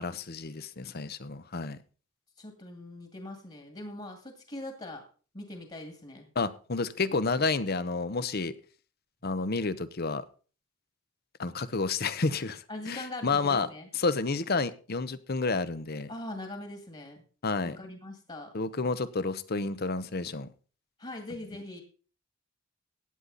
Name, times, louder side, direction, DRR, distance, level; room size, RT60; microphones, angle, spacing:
voice 1, 0.0-1.8 6.4-8.5 9.2-10.2 11.4-13.7 13.9-16.1 17.4-17.8 18.5-20.5, left 3 dB, 50° left, 15 dB, 0.9 m, -30 dB
voice 2, 2.4-5.0 5.3-6.2 12.7-13.9 16.1-17.2 17.6-18.5 21.0-21.8, left 1 dB, 30° left, 4 dB, 2.1 m, -41 dB
16.0 x 9.9 x 4.0 m, 0.38 s
head